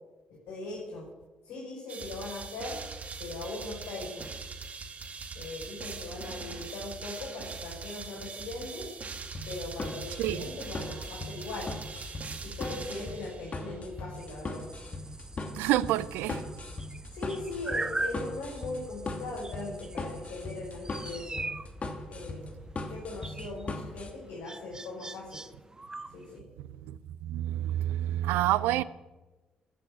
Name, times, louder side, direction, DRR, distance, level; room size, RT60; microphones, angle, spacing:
voice 1, 0.3-1.1 1.4-2.8 3.2-4.3 5.3-8.8 9.5-11.7 12.4-14.7 17.1-21.4 22.1-22.5 22.9-25.4 26.1-26.5, left 2 dB, 65° left, 5.8 m, -40 dB
sound 1, 1.9-13.8, right 4 dB, 40° right, 2.1 m, -42 dB
sound 2, 9.3-24.1, left 2 dB, 40° left, 2.8 m, -38 dB
sound 3, 14.2-26.4, right 2 dB, 20° right, 1.0 m, -41 dB
voice 2, 15.5-16.4 26.9-27.0 27.2-28.8, right 14 dB, 65° right, 0.6 m, -28 dB
14.0 x 11.5 x 8.7 m
figure-of-eight pair, 40°, 4 cm